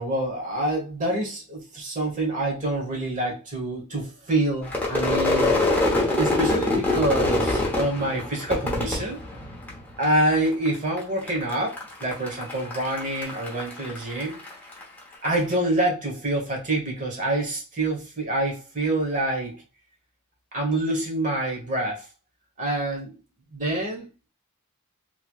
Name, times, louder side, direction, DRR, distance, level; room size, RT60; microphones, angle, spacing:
voice 1, 0.0-5.5 6.2-9.2 10.0-14.4 15.2-19.6 20.5-22.1 22.6-23.1 23.5-24.3, right 1 dB, 35° right, 0 dB, 1.1 m, -26 dB
Crowd / Fireworks, 4.6-10.0 10.3-11.0 11.3-14.8, left 2 dB, 10° left, 0.8 m, -25 dB
3.1 x 2.9 x 2.3 m, 0.31 s
head